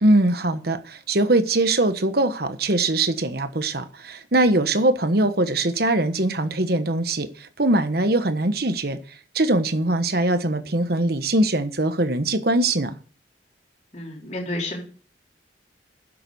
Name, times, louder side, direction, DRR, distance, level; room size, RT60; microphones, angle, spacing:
voice 1, 0.0-9.0 9.3-12.9, right 2 dB, 55° right, 9 dB, 1.2 m, -22 dB
voice 2, 13.9-14.8, left 1 dB, 40° left, -2 dB, 4.0 m, -30 dB
10.5 x 7.6 x 7.0 m, 0.40 s
head